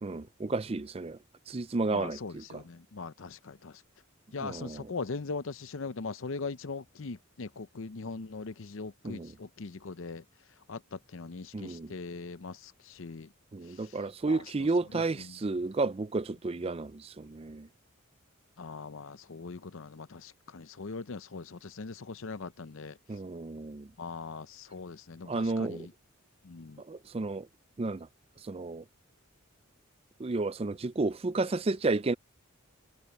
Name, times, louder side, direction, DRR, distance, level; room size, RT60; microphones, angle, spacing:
voice 1, 0.0-1.2 1.5-2.6 4.4-4.9 9.0-9.3 11.5-11.9 13.5-17.7 23.1-23.9 25.3-25.9 26.8-27.5 27.8-28.1 28.4-28.8 30.2-32.2, right 3 dB, 25° right, 0.4 m, -32 dB
voice 2, 1.9-3.8 4.3-10.2 10.7-13.3 13.6-14.0 14.3-15.4 18.6-23.0 24.0-25.9 26.4-26.8, left 4 dB, 65° left, 0.6 m, -41 dB
head